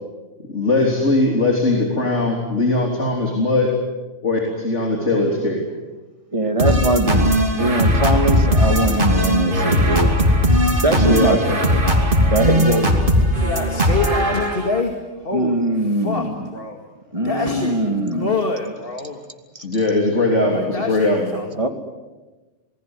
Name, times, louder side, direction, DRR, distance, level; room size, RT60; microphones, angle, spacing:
voice 1, 0.5-3.7 4.2-5.7 11.0-11.4 19.6-21.3, left 2 dB, 85° left, 1 dB, 3.7 m, -20 dB
voice 2, 6.3-10.1 10.8-11.6 12.2-12.9 15.3-16.3 17.1-18.3 19.5-19.6 21.6-21.7, right 1 dB, 30° right, 5 dB, 2.5 m, -21 dB
sound 1, 6.6-14.8, equal, 45° right, 3.1 m, -18 dB
voice 3, 12.5-16.8 17.2-19.2 20.5-21.7, left 3 dB, 50° left, 3 dB, 2.4 m, -27 dB
27.5 x 20.0 x 9.7 m, 1.2 s
omnidirectional pair, 1.2 m